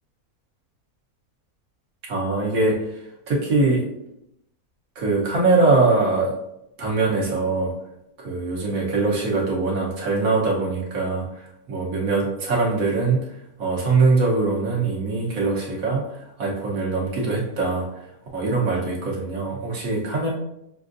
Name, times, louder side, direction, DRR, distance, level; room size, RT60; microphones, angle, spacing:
voice 1, 2.1-2.8 3.3-3.9 4.9-6.4 6.8-7.8 8.2-18.1 18.3-20.3, right 3 dB, 70° right, -3 dB, 1.5 m, -22 dB
6.4 x 2.5 x 2.5 m, 0.82 s
omnidirectional pair, 1.6 m